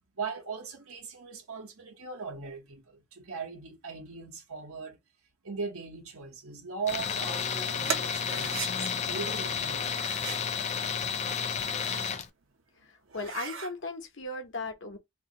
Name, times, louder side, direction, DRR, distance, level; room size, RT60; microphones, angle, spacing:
voice 1, 0.2-5.0 5.4-10.0, right 5 dB, 80° right, 1.0 m, -39 dB
Tools, 6.9-12.3, left 7 dB, 35° left, 0.4 m, -31 dB
sound 1, 7.8-8.7 9.8-10.5 11.4-12.2 12.6-12.7 13.1-13.7, right 6 dB, 60° right, 0.7 m, -38 dB
voice 2, 12.8-15.0, left 2 dB, 60° left, 0.9 m, -37 dB
2.7 x 2.7 x 3.8 m
head